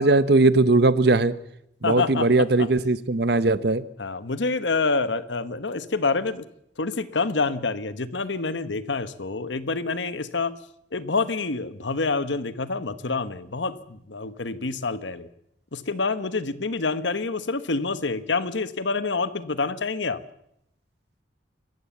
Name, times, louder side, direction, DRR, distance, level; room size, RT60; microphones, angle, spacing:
voice 1, 0.0-1.3 1.8-3.8, right 2 dB, 60° right, 16 dB, 0.9 m, -19 dB
voice 2, 1.8-2.3 2.6-2.7 4.0-6.5 6.8-10.6 10.9-15.3 15.7-20.2, left 3 dB, 80° left, 14 dB, 1.1 m, -27 dB
26.0 x 15.0 x 7.2 m, 0.77 s
head